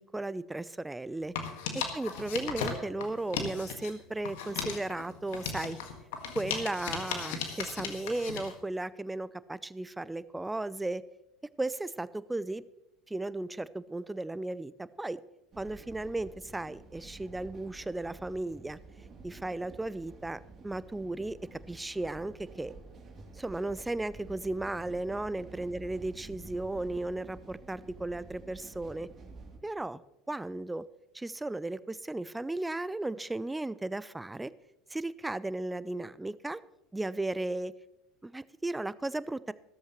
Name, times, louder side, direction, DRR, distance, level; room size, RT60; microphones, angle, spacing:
voice 1, 0.0-1.3 1.7-5.8 6.3-11.0 11.6-12.6 13.1-15.2 15.6-18.8 19.2-22.7 23.3-29.1 29.6-30.0 30.3-30.8 31.1-34.5 34.9-36.6 36.9-37.7 38.2-39.5, right 2 dB, 10° right, 18 dB, 0.5 m, -35 dB
sound 1, 1.2-3.9 4.2-8.5, left 6 dB, 70° left, 1.8 m, -37 dB
sound 2, 15.5-29.6, right 3 dB, 35° right, 3.0 m, -50 dB
14.5 x 13.5 x 3.1 m, 0.89 s
hypercardioid pair, 70°, 0 cm